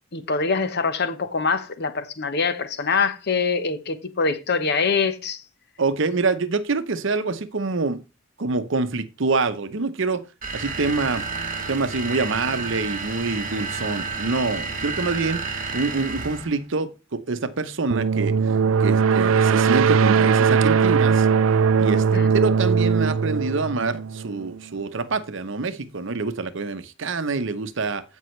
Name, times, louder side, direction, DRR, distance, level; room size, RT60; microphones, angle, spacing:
voice 1, 0.1-5.4 22.1-22.3, left 4 dB, 55° left, 1.0 m, -24 dB
voice 2, 5.8-8.0 8.4-10.3 10.5-11.2 11.7-15.4 15.7-18.4 18.8-21.3 21.8-28.0, right 3 dB, 65° right, 0.8 m, -26 dB
sound 1, 10.4-16.6, right 4 dB, 40° right, 1.7 m, -31 dB
sound 2, 17.9-24.6, right 6 dB, 80° right, 0.4 m, -19 dB
15.5 x 5.4 x 3.2 m
head